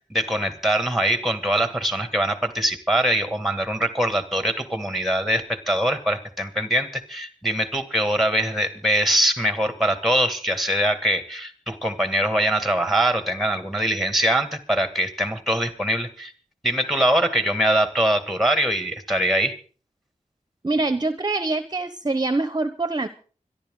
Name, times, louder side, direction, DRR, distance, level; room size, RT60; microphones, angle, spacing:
voice 1, 0.1-16.3 16.6-19.5, right 1 dB, ahead, 9 dB, 2.3 m, -23 dB
voice 2, 20.6-23.1, right 2 dB, 30° right, 11 dB, 1.0 m, -24 dB
25.5 x 11.5 x 3.9 m, 0.41 s
wide cardioid pair, 70°, 14 cm